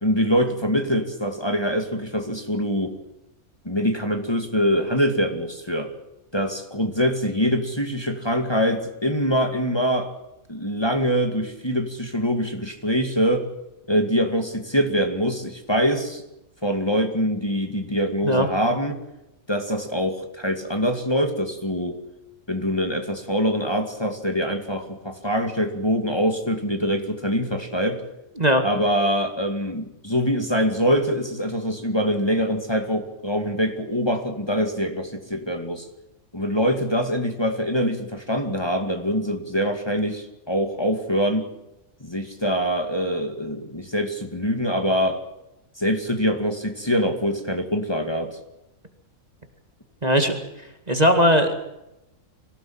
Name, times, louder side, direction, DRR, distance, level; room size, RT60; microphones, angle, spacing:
voice 1, 0.0-3.0 3.6-5.9 6.3-10.1 10.5-13.5 13.9-16.2 16.6-19.0 19.5-22.0 22.5-28.0 28.6-35.8 36.3-41.5 42.0-45.2 45.8-48.4, equal, 20° left, 5 dB, 2.3 m, -24 dB
voice 2, 50.0-50.3 50.9-51.5, equal, 30° right, 6 dB, 2.2 m, -18 dB
24.5 x 17.0 x 8.8 m, 0.91 s
omnidirectional pair, 1.4 m